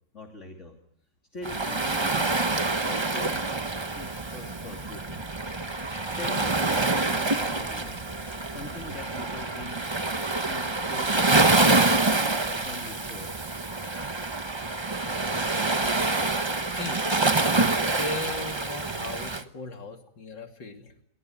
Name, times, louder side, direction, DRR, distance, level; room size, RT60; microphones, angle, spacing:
voice 1, 0.1-0.7 1.3-3.5 3.9-5.3 6.2-8.0 8.5-9.8 10.4-12.0 12.4-13.3, left 2 dB, 40° left, 1 dB, 3.2 m, -42 dB
Waves surf, 1.4-19.4, right 2 dB, 20° right, 0.8 m, -26 dB
voice 2, 16.6-17.0 17.8-20.9, left 2 dB, 80° left, 4 dB, 3.5 m, -37 dB
27.5 x 23.0 x 9.1 m, 0.74 s
omnidirectional pair, 1.9 m